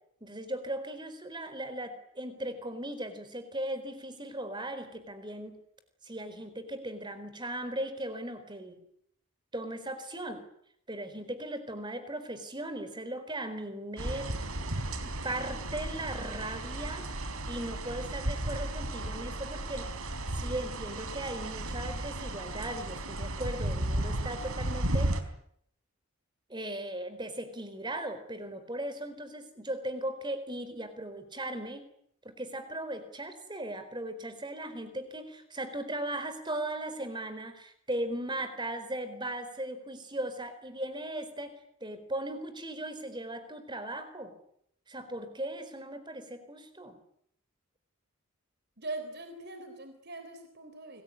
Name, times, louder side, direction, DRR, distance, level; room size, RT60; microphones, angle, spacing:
voice 1, 0.2-5.6 6.0-8.8 9.5-10.4 10.9-14.3 15.0-17.1 17.5-19.9 20.3-25.2 26.5-31.9 32.2-44.3 44.9-47.0, right 1 dB, 20° right, 10 dB, 4.1 m, -38 dB
sound 1, 14.0-25.2, right 1 dB, 75° right, 4.0 m, -34 dB
voice 2, 48.8-51.0, right 2 dB, 50° right, 7 dB, 3.8 m, -41 dB
28.5 x 20.5 x 9.8 m, 0.71 s
head